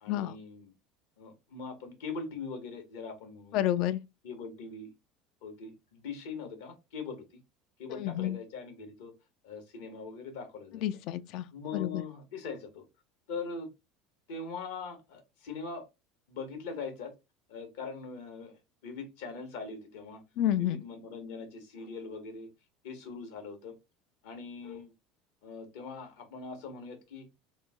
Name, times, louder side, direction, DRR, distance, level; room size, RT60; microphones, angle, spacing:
voice 1, 0.0-0.7 1.2-3.6 4.2-4.9 5.4-7.2 7.8-9.1 9.4-10.8 11.5-12.8 13.3-13.7 14.3-15.8 16.3-17.1 17.5-20.2 20.6-22.5 22.8-23.7 24.2-24.9 25.4-27.3, left 4 dB, 80° left, 1.0 m, -41 dB
voice 2, 3.5-4.0 7.9-8.4 10.8-11.5 11.7-12.0 20.4-20.8, left 12 dB, 65° left, 0.3 m, -29 dB
3.0 x 2.0 x 3.4 m
supercardioid pair, 95°, 0 cm